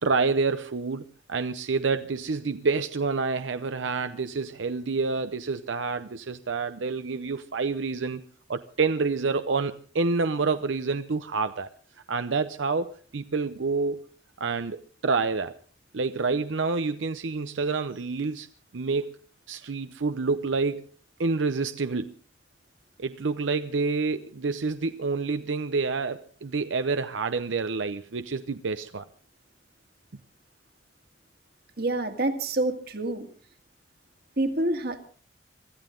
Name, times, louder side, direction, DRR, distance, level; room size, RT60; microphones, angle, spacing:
voice 1, 0.0-8.2 8.5-11.7 12.1-14.0 14.4-15.6 15.9-18.5 18.7-19.1 19.5-20.9 21.2-22.1 23.0-29.1, right 4 dB, 90° right, 10 dB, 0.7 m, -28 dB
voice 2, 31.8-33.3 34.4-35.1, right 2 dB, 55° right, 6 dB, 2.0 m, -27 dB
25.0 x 14.0 x 3.8 m, 0.41 s
head